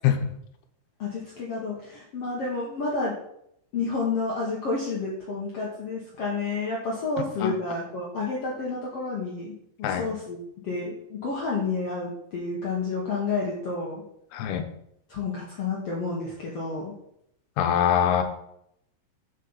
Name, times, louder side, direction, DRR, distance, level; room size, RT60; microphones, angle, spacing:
voice 1, 1.0-3.1 3.7-14.0 15.1-16.9, left 3 dB, 65° left, -3 dB, 1.5 m, -30 dB
voice 2, 14.3-14.7 17.6-18.2, left 9 dB, 90° left, 7 dB, 2.6 m, -23 dB
7.4 x 6.8 x 4.0 m, 0.75 s
omnidirectional pair, 4.4 m